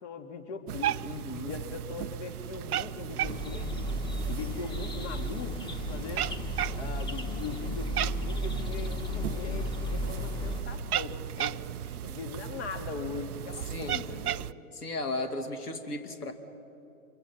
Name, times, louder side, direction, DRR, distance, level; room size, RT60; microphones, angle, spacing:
voice 1, 0.0-1.0 1.4-3.9 4.3-6.3 6.7-14.5, left 5 dB, 50° left, 6 dB, 2.5 m, -40 dB
Cat, 0.7-14.5, right 12 dB, 75° right, 0.6 m, -36 dB
voice 2, 1.0-1.5 13.7-13.9 14.7-16.3, left 2 dB, 85° left, 7 dB, 2.5 m, -35 dB
sound 1, 3.2-10.6, equal, 10° left, 1.4 m, -34 dB
27.0 x 22.5 x 6.0 m, 2.9 s
hypercardioid pair, 120°, 45 cm